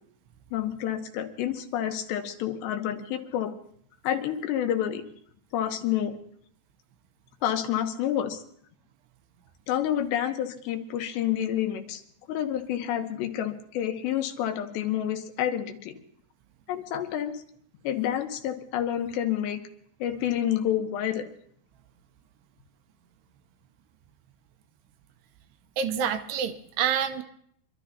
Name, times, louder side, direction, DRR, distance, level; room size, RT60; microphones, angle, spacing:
voice 1, 0.5-3.5 4.0-5.0 5.5-6.2 7.4-8.4 9.7-12.0 12.3-15.9 16.7-17.4 17.8-19.6 20.0-21.3, left 10 dB, 85° left, 6 dB, 3.3 m, -29 dB
voice 2, 25.8-27.2, right 8 dB, 80° right, 8 dB, 2.7 m, -27 dB
26.0 x 12.5 x 2.8 m, 0.66 s
omnidirectional pair, 4.9 m